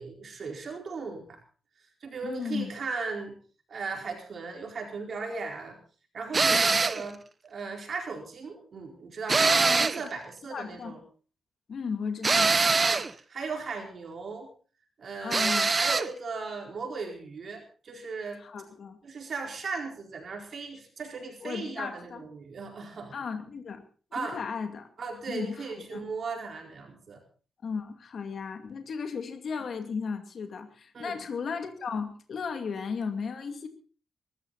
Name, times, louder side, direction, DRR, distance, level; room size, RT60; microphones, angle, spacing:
voice 1, 0.0-1.4 2.0-3.4 3.7-5.8 6.1-7.2 7.4-11.0 12.8-14.5 15.0-18.4 19.0-23.1 24.1-24.4 25.0-27.2 30.9-31.2, right 4 dB, 50° right, 1 dB, 4.4 m, -37 dB
voice 2, 2.2-2.7 6.5-6.8 9.5-9.9 10.5-10.9 11.7-12.6 15.2-15.7 18.4-19.0 21.4-22.2 23.1-23.8 24.2-24.9 25.3-26.0 27.6-33.7, left 5 dB, 60° left, 6 dB, 2.4 m, -35 dB
sound 1, 6.3-7.1 9.3-10.1 12.2-13.1 15.3-16.1, right 4 dB, 30° right, 0.7 m, -23 dB
22.5 x 13.5 x 4.2 m, 0.39 s
cardioid pair, 115°, 0 cm